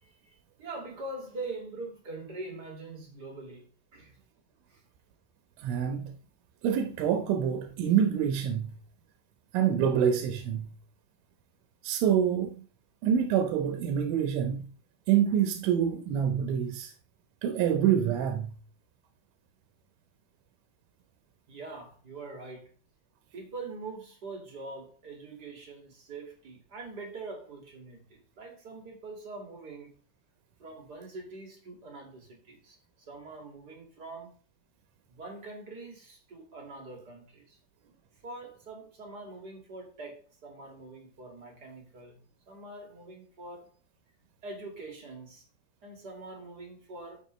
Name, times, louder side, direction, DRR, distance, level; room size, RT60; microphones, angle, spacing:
voice 1, 0.0-4.2 4.7-4.8 21.5-22.7 23.3-29.9 30.6-32.8 33.1-34.3 35.1-37.6 38.2-42.2 42.4-43.7 44.4-45.5 45.8-47.2, right 3 dB, 35° right, 1.6 m, -43 dB
voice 2, 5.6-6.1 6.6-8.7 9.5-10.7 11.8-12.6 13.0-14.6 15.1-16.9 17.4-18.5, right 8 dB, 80° right, 3.5 m, -26 dB
14.5 x 6.4 x 3.2 m
omnidirectional pair, 5.5 m